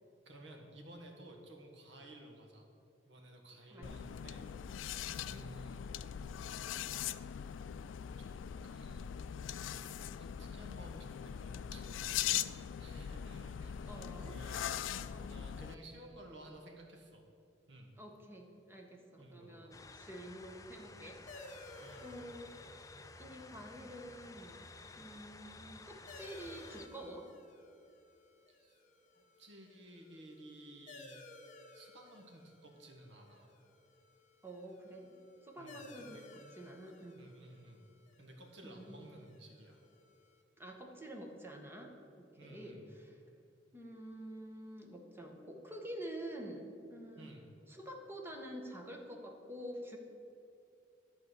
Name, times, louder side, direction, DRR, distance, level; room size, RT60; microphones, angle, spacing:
voice 1, 0.2-2.6 3.1-4.5 5.1-5.8 6.9-7.4 8.2-8.3 8.6-9.3 9.6-14.7 15.3-17.2 17.7-17.9 19.2-19.8 21.8-22.1 28.5-28.8 29.1-31.3 31.7-33.5 35.6-36.2 37.2-37.8 38.2-39.8 42.4-42.9 47.2-47.5, right 1 dB, 70° right, 1 dB, 1.5 m, -55 dB
sound 1, 3.8-15.8, left 10 dB, 85° left, 0.3 m, -41 dB
voice 2, 5.1-5.5 13.8-14.7 15.1-15.5 18.0-21.6 22.0-22.5 23.2-24.6 25.0-27.3 34.4-37.2 38.6-39.0 40.6-43.2 43.7-47.3 47.7-50.0, right 1 dB, 15° right, 2 dB, 1.1 m, -48 dB
sound 2, 19.7-26.9, left 3 dB, 20° left, 0.4 m, -53 dB
sound 3, 21.3-40.4, left 2 dB, 40° left, 0.9 m, -58 dB
11.0 x 4.4 x 8.1 m, 2.5 s
head